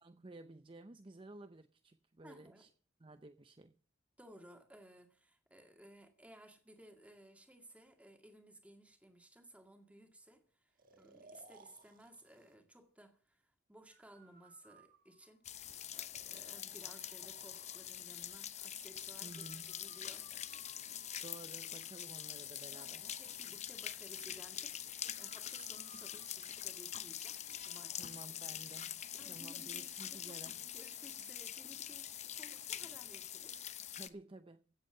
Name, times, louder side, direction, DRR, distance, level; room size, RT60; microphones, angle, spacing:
voice 1, 0.0-2.7 3.0-3.7 19.2-19.8 21.2-23.1 28.0-30.6 34.0-34.6, right 2 dB, 25° right, 0.6 m, -54 dB
voice 2, 2.2-2.7 4.2-15.5 15.9-21.0 22.7-28.4 29.2-33.6, right 1 dB, 5° right, 2.0 m, -58 dB
Breathing, 10.8-12.6 13.9-15.6 16.1-17.9 19.3-21.5 22.3-23.5 25.1-28.0, right 4 dB, 45° right, 1.8 m, -63 dB
sound 1, 15.4-34.1, left 10 dB, 35° left, 0.7 m, -45 dB
16.0 x 8.2 x 6.7 m
head